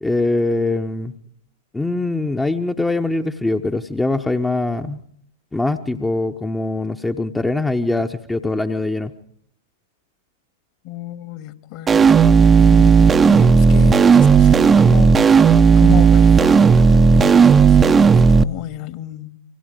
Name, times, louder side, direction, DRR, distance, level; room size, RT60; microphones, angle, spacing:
voice 1, 0.0-1.1 1.7-5.0 5.5-9.1, left 2 dB, 5° left, 1.1 m, -22 dB
voice 2, 10.8-12.2 12.6-15.2 15.8-19.4, left 12 dB, 40° left, 2.0 m, -31 dB
sound 1, 11.9-18.4, right 5 dB, 15° right, 0.9 m, -12 dB
28.0 x 25.0 x 5.3 m
figure-of-eight pair, 100°, 0 cm